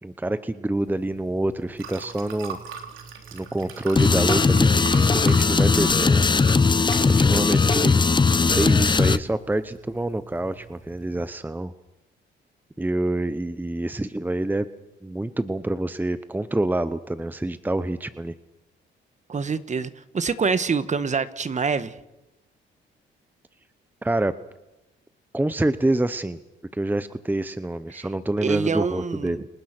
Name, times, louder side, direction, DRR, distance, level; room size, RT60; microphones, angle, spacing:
voice 1, 0.0-2.6 3.3-6.3 7.1-8.0 8.5-11.7 12.8-14.7 15.0-18.4 24.0-24.3 25.3-26.4 26.7-29.5, right 1 dB, 10° right, 13 dB, 0.9 m, -26 dB
Liquid, 0.7-11.3, right 6 dB, 85° right, 3.6 m, -40 dB
sound 1, 4.0-9.2, left 4 dB, 25° left, 0.8 m, -19 dB
voice 2, 19.3-22.0 27.9-28.1 28.4-29.5, right 5 dB, 35° right, 13 dB, 1.5 m, -26 dB
30.0 x 19.5 x 6.1 m, 0.99 s
cardioid pair, 90°, 20 cm